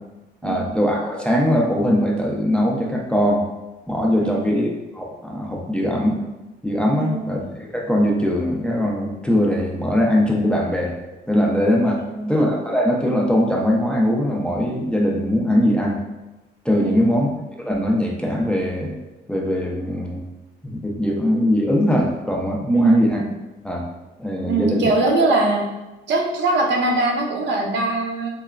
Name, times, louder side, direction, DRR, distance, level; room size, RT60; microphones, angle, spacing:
voice 1, 0.4-3.4 3.9-6.2 6.6-10.9 11.3-12.0 12.3-16.0 16.6-17.3 17.7-19.0 19.3-20.2 20.6-23.2 23.6-23.9 24.2-24.8, equal, 5° left, -2 dB, 0.4 m, -21 dB
voice 2, 4.2-4.5 6.9-7.3 12.0-12.3 16.8-17.2 22.7-23.0 24.4-25.7 26.1-28.3, right 2 dB, 65° right, 1 dB, 0.5 m, -22 dB
2.9 x 2.1 x 2.3 m, 1.1 s
cardioid pair, 90°, 20 cm